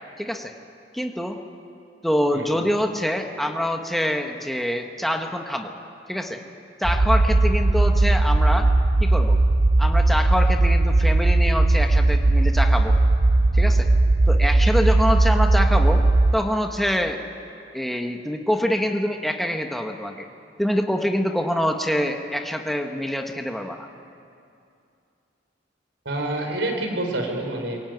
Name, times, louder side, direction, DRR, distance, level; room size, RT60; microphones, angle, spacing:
voice 1, 0.2-0.5 0.9-1.4 2.0-5.7 6.1-6.4 6.8-8.7 9.0-9.4 9.8-13.0 13.5-13.9 14.3-16.0 16.3-17.2 17.7-20.3 20.6-23.9, equal, ahead, 3 dB, 1.4 m, -25 dB
voice 2, 2.3-2.6 26.0-27.8, right 1 dB, 75° right, 3 dB, 4.7 m, -27 dB
sound 1, 6.8-16.3, right 2 dB, 35° right, 0.6 m, -18 dB
24.0 x 22.0 x 9.4 m, 2.5 s
head